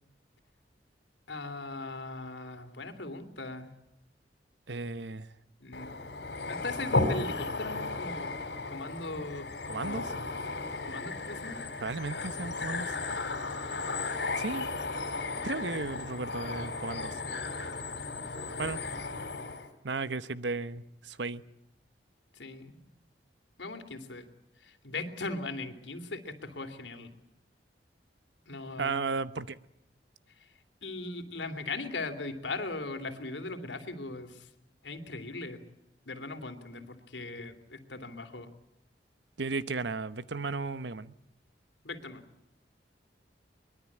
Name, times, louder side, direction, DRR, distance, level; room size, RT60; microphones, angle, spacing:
voice 1, 1.3-3.7 5.6-5.9 6.4-8.3 8.7-9.5 9.7-10.3 10.8-11.6 22.4-22.8 23.6-24.2 24.6-27.1 28.5-29.0 30.8-34.5 34.8-35.6 36.1-38.5 41.8-42.2, left 3 dB, 90° left, 8 dB, 3.0 m, -39 dB
voice 2, 4.7-5.3 9.7-10.1 11.8-12.9 14.4-14.7 15.4-17.2 18.6-18.8 19.8-21.4 28.8-29.6 39.4-41.1, right 3 dB, 80° right, 15 dB, 1.0 m, -34 dB
sound 1, 5.7-19.7, left 3 dB, 75° left, 3.8 m, -35 dB
23.5 x 21.5 x 8.6 m, 0.84 s
head